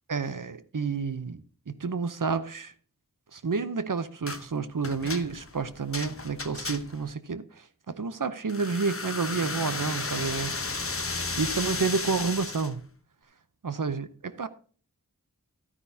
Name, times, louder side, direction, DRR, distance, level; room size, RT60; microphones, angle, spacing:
voice 1, 0.1-2.7 3.3-10.6 11.4-12.8 13.6-14.5, right 5 dB, 65° right, 0.7 m, -30 dB
sound 1, 4.3-4.5 4.8-7.1 8.5-12.7, left 3 dB, 40° left, 0.8 m, -34 dB
12.5 x 9.8 x 2.7 m
wide cardioid pair, 45°, 35 cm